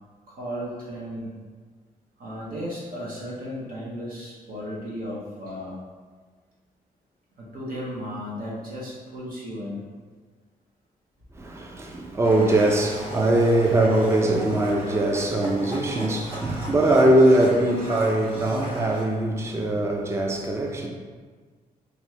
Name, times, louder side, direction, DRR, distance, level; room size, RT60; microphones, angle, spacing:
voice 1, 0.3-1.3 2.2-5.8 7.4-9.9, equal, 75° right, 1.1 m, -35 dB
voice 2, 11.4-20.9, right 1 dB, 15° right, 0.4 m, -21 dB
Domestic sounds home sounds, 12.2-19.0, equal, 40° right, 1.3 m, -37 dB
3.0 x 2.6 x 4.3 m
cardioid pair, 100°, 15 cm